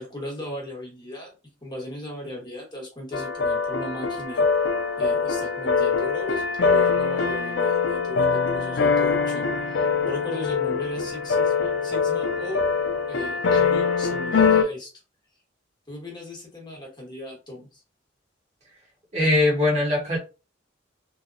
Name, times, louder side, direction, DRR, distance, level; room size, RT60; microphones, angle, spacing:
voice 1, 0.0-1.3 1.6-4.4 5.0-12.7 13.1-14.9 15.9-17.8, left 1 dB, 25° left, -2 dB, 1.2 m, -37 dB
sound 1, 3.1-14.6, left 5 dB, 65° left, 0.4 m, -23 dB
voice 2, 19.1-20.2, left 2 dB, 35° right, -3 dB, 1.1 m, -21 dB
2.8 x 2.2 x 2.5 m, 0.31 s
head